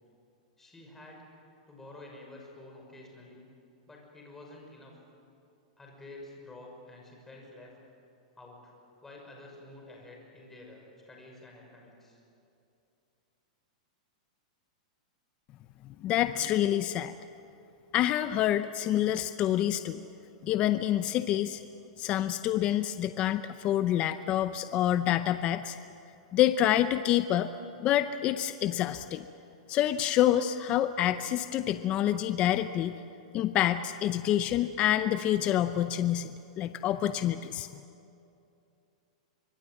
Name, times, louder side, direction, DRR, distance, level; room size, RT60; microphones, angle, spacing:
voice 1, 0.6-1.2 1.7-3.5 3.9-4.9 5.8-7.7 8.4-8.7 9.0-12.2, left 2 dB, 10° left, 0 dB, 6.0 m, -49 dB
voice 2, 16.0-17.1 17.9-20.0 20.4-21.6 22.0-25.8 26.3-27.5 27.8-29.3 29.7-33.0 33.3-36.3 36.6-37.7, left 12 dB, 30° left, 11 dB, 0.7 m, -27 dB
25.5 x 24.5 x 7.8 m, 2.7 s
supercardioid pair, 150°, 4 cm